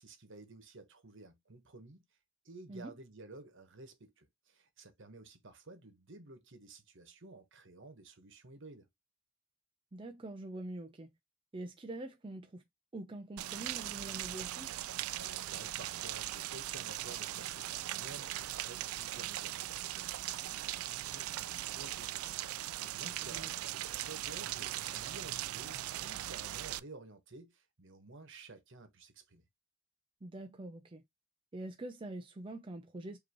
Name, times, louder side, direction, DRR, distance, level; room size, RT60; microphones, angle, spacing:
voice 1, 0.0-2.0 2.4-8.9 15.1-29.4, right 3 dB, 60° right, 1.3 m, -53 dB
voice 2, 9.9-11.1 11.5-12.6 12.9-14.8 23.0-23.6 30.2-31.0 31.5-33.2, right 2 dB, 25° right, 0.5 m, -45 dB
Rain, 13.4-26.8, right 14 dB, 85° right, 0.4 m, -39 dB
5.1 x 2.9 x 3.0 m
head